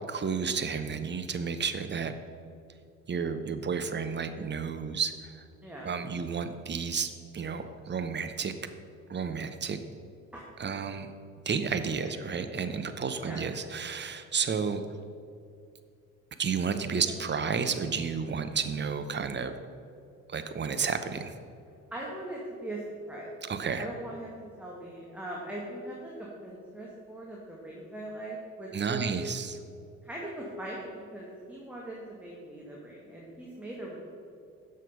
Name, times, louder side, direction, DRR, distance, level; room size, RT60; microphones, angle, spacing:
voice 1, 0.1-2.1 3.1-5.3 5.8-8.5 9.1-9.8 10.6-11.1 11.5-14.8 16.4-19.5 20.3-21.3 23.4-23.9 28.7-29.6, right 6 dB, 25° right, 9 dB, 0.8 m, -31 dB
voice 2, 5.6-5.9 10.3-10.5 12.0-12.2 13.2-13.4 16.7-17.2 21.9-22.8 23.1-23.3 23.7-29.0 30.0-34.0, right 1 dB, 5° right, -4 dB, 2.0 m, -40 dB
10.0 x 6.5 x 5.4 m, 2.4 s
figure-of-eight pair, 55°, 41 cm